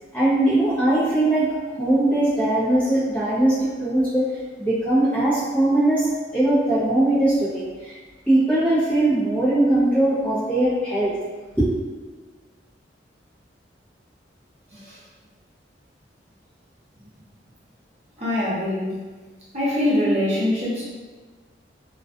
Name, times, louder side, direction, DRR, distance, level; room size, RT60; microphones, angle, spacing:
voice 1, 0.1-4.2 4.6-6.0 6.3-8.0 8.3-11.2 11.6-11.7, right 1 dB, 10° left, -12 dB, 0.7 m, -20 dB
voice 2, 18.2-18.9 19.5-20.8, left 1 dB, 40° right, -9 dB, 0.7 m, -23 dB
2.3 x 2.3 x 2.3 m, 1.4 s
head